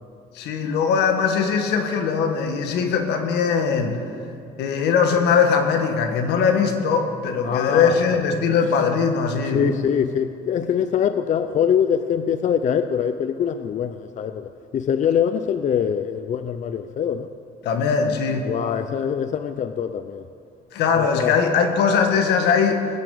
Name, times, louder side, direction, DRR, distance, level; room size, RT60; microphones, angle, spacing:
voice 1, 0.3-4.0 4.6-9.6 17.6-18.5 20.7-22.9, left 6 dB, 80° left, 5 dB, 1.9 m, -20 dB
voice 2, 7.4-8.2 9.5-17.3 18.5-20.3 21.0-21.3, left 8 dB, 45° left, 10 dB, 0.6 m, -23 dB
20.5 x 7.6 x 8.5 m, 2.7 s
cardioid pair, 110°, 17 cm